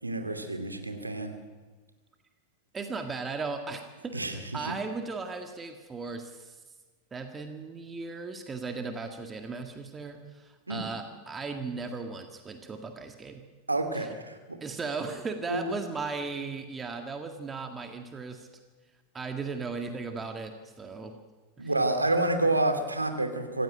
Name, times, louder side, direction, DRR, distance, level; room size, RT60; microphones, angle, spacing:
voice 1, 0.0-1.3 4.1-4.7 10.7-10.8 13.7-14.6 15.5-15.6 21.6-23.6, right 2 dB, 80° right, 6 dB, 2.7 m, -29 dB
voice 2, 2.7-6.6 7.1-13.4 13.9-14.1 14.6-18.5 19.1-21.1 21.6-21.7, right 4 dB, 15° right, 5 dB, 1.9 m, -37 dB
25.5 x 15.5 x 9.0 m, 1.4 s
figure-of-eight pair, 90°, 0 cm